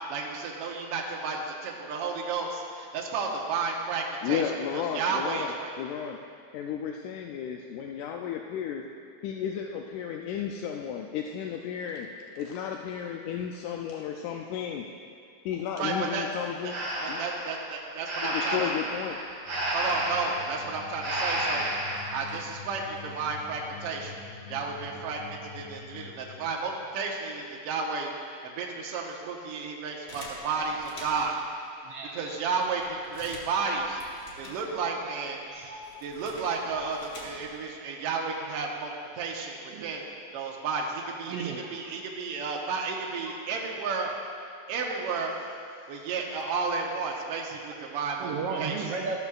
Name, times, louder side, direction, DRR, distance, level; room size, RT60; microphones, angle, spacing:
voice 1, 0.0-5.7 15.8-16.3 16.6-16.7 17.0-18.7 19.7-21.7 22.1-24.2 24.5-28.1 28.4-31.4 32.1-34.0 34.4-35.4 36.0-40.1 40.3-44.1 44.7-45.3 45.9-48.3 48.6-48.8, right 4 dB, 60° right, -1 dB, 1.8 m, -32 dB
voice 2, 4.2-5.5 5.8-6.2 6.5-8.8 9.2-12.1 12.4-14.9 15.5-16.8 17.1-17.2 18.2-19.2, left 8 dB, 85° left, 2 dB, 2.0 m, -33 dB
Breathing, 16.7-22.2, right 1 dB, 40° right, 2.1 m, -31 dB
sound 1, 19.4-26.8, left 6 dB, 55° left, 2.4 m, -46 dB
sound 2, 30.1-31.4 32.1-32.2 32.4-35.0 35.3-37.7, left 1 dB, 35° left, 1.1 m, -47 dB
voice 3, 31.8-32.3 35.4-36.0 37.8-37.9 39.7-39.9 41.3-42.0 43.3-43.4 45.9-46.1 48.2-49.2, right 5 dB, 80° right, -1 dB, 1.4 m, -35 dB
13.5 x 12.0 x 2.4 m, 2.3 s
omnidirectional pair, 3.4 m